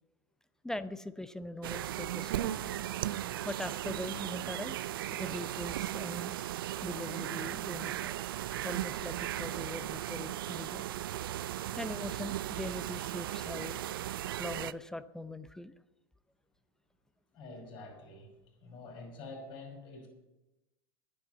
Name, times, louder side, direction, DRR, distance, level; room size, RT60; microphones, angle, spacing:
voice 1, 0.6-2.6 3.4-4.8 5.1-6.3 6.8-8.1 8.6-10.8 11.8-13.8 14.4-15.7, left 1 dB, 5° left, 12 dB, 0.6 m, -41 dB
sound 1, 1.6-14.7, right 13 dB, 80° right, 0.4 m, -37 dB
voice 2, 17.3-20.1, left 3 dB, 45° left, 2 dB, 5.6 m, -47 dB
11.0 x 9.9 x 7.9 m, 1.0 s
hypercardioid pair, 105°, 12 cm